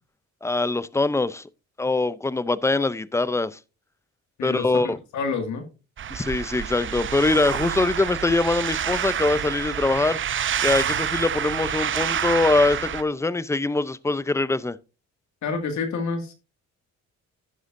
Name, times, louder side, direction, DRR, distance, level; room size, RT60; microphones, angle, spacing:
voice 1, 0.4-1.4 1.8-3.6 4.4-5.0 6.1-10.2 10.6-14.8, left 2 dB, 10° left, 0.5 m, -23 dB
voice 2, 4.4-4.7 5.1-5.7 15.4-16.3, left 4 dB, 70° left, 2.1 m, -28 dB
sound 1, 6.0-13.0, right 9 dB, 40° right, 0.6 m, -28 dB
11.5 x 9.5 x 2.6 m
cardioid pair, 90°, 30 cm